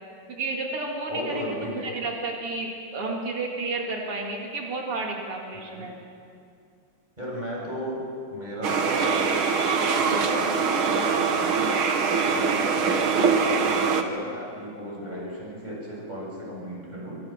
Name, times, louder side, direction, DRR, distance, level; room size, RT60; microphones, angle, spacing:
voice 1, 0.3-5.9, right 2 dB, 90° right, 0 dB, 3.4 m, -31 dB
voice 2, 1.1-1.9 5.5-5.9 7.2-8.0 8.3-11.8 12.3-17.2, equal, 20° right, -4 dB, 7.8 m, -35 dB
sound 1, 8.6-14.0, right 5 dB, 70° right, 2.2 m, -23 dB
26.0 x 25.0 x 5.9 m, 2.4 s
omnidirectional pair, 2.4 m